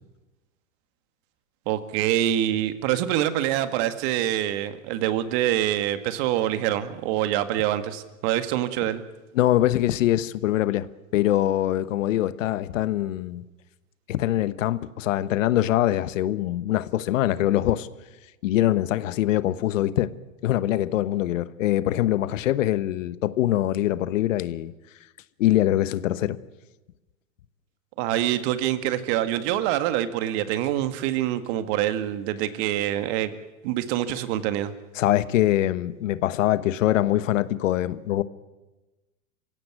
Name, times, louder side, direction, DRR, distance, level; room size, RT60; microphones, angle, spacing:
voice 1, 1.7-9.0 28.0-33.4 33.6-34.7, right 12 dB, 50° right, 1.9 m, -25 dB
voice 2, 9.3-10.9 11.1-13.4 14.1-17.9 18.4-20.1 20.4-24.7 25.4-26.4 35.0-38.2, left 13 dB, 70° left, 1.2 m, -23 dB
24.5 x 16.5 x 9.5 m
hypercardioid pair, 120°, 40 cm